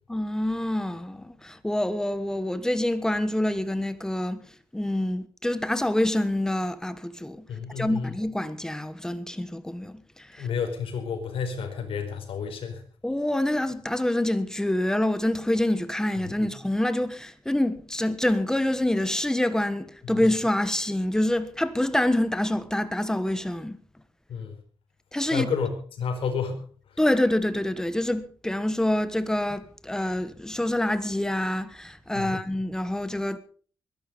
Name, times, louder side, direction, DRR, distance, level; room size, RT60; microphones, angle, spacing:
voice 1, 0.1-4.4 4.7-7.4 7.8-10.5 13.0-23.8 25.1-25.5 27.0-33.4, left 1 dB, 5° left, 1.4 m, -26 dB
voice 2, 7.5-8.1 10.4-12.8 16.4-16.5 24.3-24.5 25.3-26.6 32.1-32.3, left 6 dB, 80° left, 4.9 m, -30 dB
21.5 x 11.5 x 5.3 m
wide cardioid pair, 145°, 9 cm